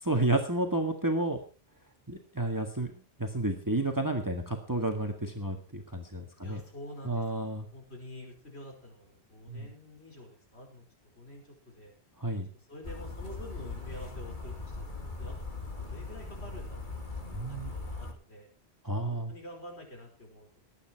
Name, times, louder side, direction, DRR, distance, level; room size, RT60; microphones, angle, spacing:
voice 1, 0.0-1.4 2.1-2.9 3.2-6.6 7.0-7.7 9.5-9.7 12.2-12.5 17.3-17.7 18.8-19.3, right 1 dB, 20° right, 4 dB, 1.8 m, -31 dB
voice 2, 6.4-10.9 11.2-11.9 12.5-17.1 17.5-18.5 19.1-20.5, left 1 dB, 85° left, 1 dB, 5.6 m, -48 dB
sound 1, 12.8-18.1, left 3 dB, 50° left, 2.7 m, -40 dB
20.5 x 9.2 x 4.6 m, 0.35 s
omnidirectional pair, 1.1 m